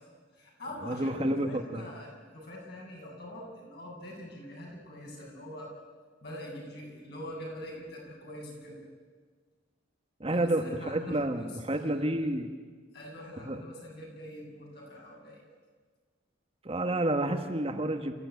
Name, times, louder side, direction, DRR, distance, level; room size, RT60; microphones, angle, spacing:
voice 1, 0.3-5.7 6.2-8.8 10.3-12.3 12.9-15.4, left 1 dB, 55° left, -1 dB, 7.9 m, -44 dB
voice 2, 0.9-1.8 10.2-12.5 13.5-13.6 16.6-18.1, right 1 dB, 30° right, 5 dB, 1.4 m, -29 dB
28.5 x 14.5 x 9.5 m, 1.5 s
head